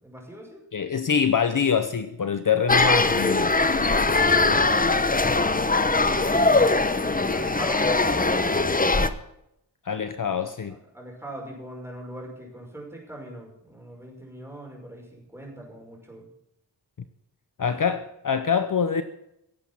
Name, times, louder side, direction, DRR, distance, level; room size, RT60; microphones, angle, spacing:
voice 1, 0.0-0.6 3.4-6.9 7.3-8.1 10.0-10.2 10.7-16.3, right 1 dB, 5° right, 5.6 m, -42 dB
voice 2, 0.7-3.5 4.5-4.6 9.8-10.8 17.6-19.0, left 6 dB, 50° left, 0.8 m, -25 dB
sound 1, 2.7-9.1, left 3 dB, 20° left, 0.8 m, -21 dB
17.5 x 8.1 x 7.2 m
wide cardioid pair, 115°, 43 cm